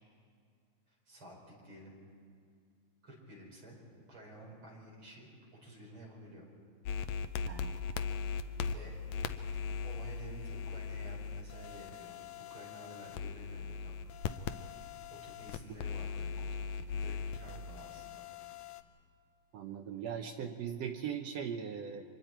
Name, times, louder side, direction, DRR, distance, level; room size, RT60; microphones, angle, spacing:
voice 1, 0.9-2.0 3.0-3.8 4.1-5.3 5.6-6.5 8.3-9.0 9.8-14.0 15.1-18.3, right 1 dB, 40° right, -3 dB, 5.4 m, -52 dB
sound 1, 6.9-18.8, left 5 dB, 80° left, 1.5 m, -39 dB
voice 2, 7.5-8.1 8.6-8.7 19.5-22.0, right 8 dB, 70° right, 4 dB, 1.6 m, -40 dB
30.0 x 25.0 x 4.5 m, 2.2 s
omnidirectional pair, 3.8 m